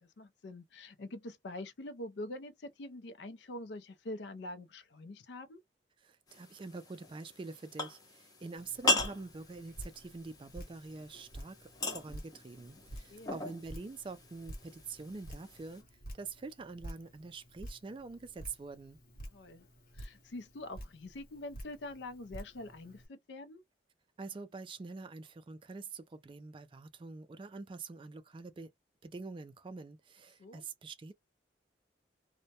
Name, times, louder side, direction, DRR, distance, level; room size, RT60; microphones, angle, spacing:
voice 1, 0.0-5.6 13.1-13.4 19.3-19.7 19.9-23.6 30.4-30.6, left 1 dB, 75° left, 0.5 m, -45 dB
voice 2, 6.0-15.8 16.1-19.0 24.2-28.7 29.0-31.1, right 4 dB, 30° right, 0.3 m, -45 dB
sound 1, 6.3-15.8, left 2 dB, 20° left, 0.6 m, -39 dB
Drip, 8.6-23.1, equal, 50° left, 0.8 m, -50 dB
2.1 x 2.1 x 2.8 m
head